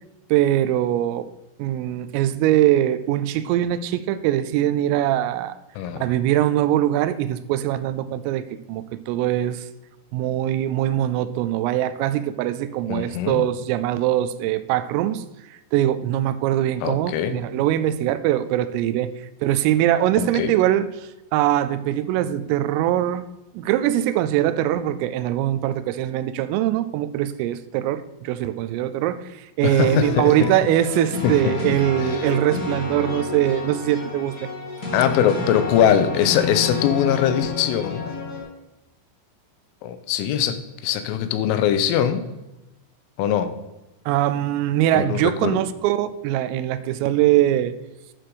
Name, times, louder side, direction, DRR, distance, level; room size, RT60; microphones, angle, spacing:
voice 1, 0.3-1.3 1.6-5.5 6.0-9.7 10.1-15.2 15.7-19.1 19.4-20.9 21.3-23.3 23.5-29.2 29.6-34.3 44.1-47.7, right 12 dB, 90° right, 3.2 m, -22 dB
voice 2, 12.9-13.5 16.8-17.4 20.2-20.5 29.6-30.5 31.2-31.7 32.0-32.3 34.9-38.1 39.8-42.3 43.2-43.5 44.9-45.6, left 9 dB, 85° left, 3.3 m, -22 dB
sound 1, 29.8-38.4, left 3 dB, 45° left, 1.2 m, -30 dB
11.5 x 6.0 x 4.9 m
omnidirectional pair, 5.8 m